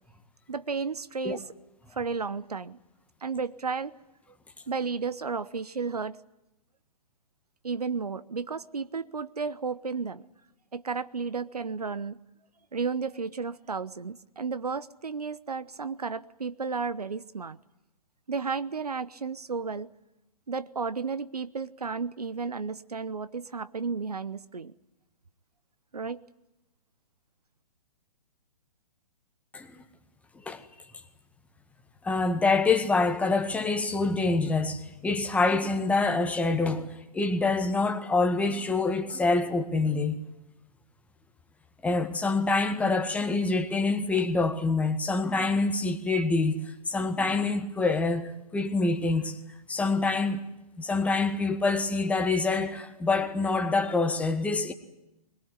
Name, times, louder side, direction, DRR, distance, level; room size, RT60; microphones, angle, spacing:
voice 1, 0.5-1.5 1.9-2.8 3.2-3.9 4.7-6.2 7.6-10.2 10.7-12.2 12.7-17.6 18.3-19.9 20.5-24.7 25.9-26.2, right 5 dB, 75° right, 1.1 m, -33 dB
voice 2, 32.0-40.2 41.8-49.4 49.7-50.4 50.8-54.7, left 3 dB, 5° left, 1.8 m, -26 dB
22.0 x 20.5 x 9.7 m
figure-of-eight pair, 125°, 20 cm